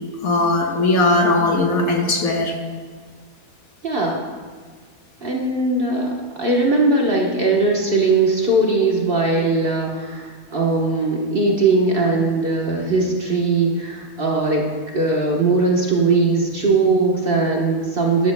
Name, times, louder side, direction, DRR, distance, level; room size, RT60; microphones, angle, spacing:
voice 1, 0.2-2.5, left 2 dB, 60° left, 1 dB, 1.6 m, -18 dB
voice 2, 3.8-4.2 5.2-14.7 14.9-18.3, right 3 dB, 40° right, -1 dB, 1.2 m, -19 dB
13.0 x 12.0 x 2.2 m, 1.5 s
omnidirectional pair, 1.7 m